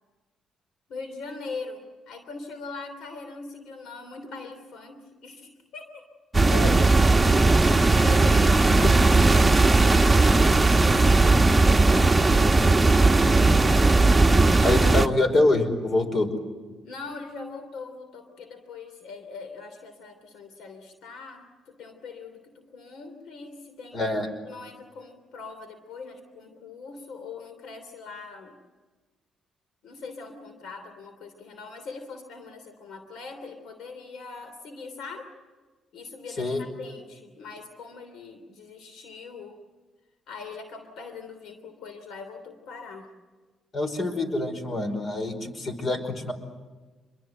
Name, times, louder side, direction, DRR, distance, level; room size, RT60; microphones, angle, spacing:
voice 1, 0.9-6.1 7.9-14.8 16.8-24.1 24.4-28.6 29.8-35.3 35.9-39.6 40.3-43.1, left 4 dB, 80° left, 8 dB, 3.1 m, -41 dB
sound 1, 6.3-15.1, right 3 dB, 10° right, 1.3 m, -18 dB
voice 2, 6.5-7.0 14.6-16.3 23.9-24.3 36.4-36.6 43.7-46.3, left 2 dB, 45° left, 8 dB, 5.1 m, -25 dB
27.0 x 23.0 x 7.8 m, 1.3 s
cardioid pair, 90°, 0 cm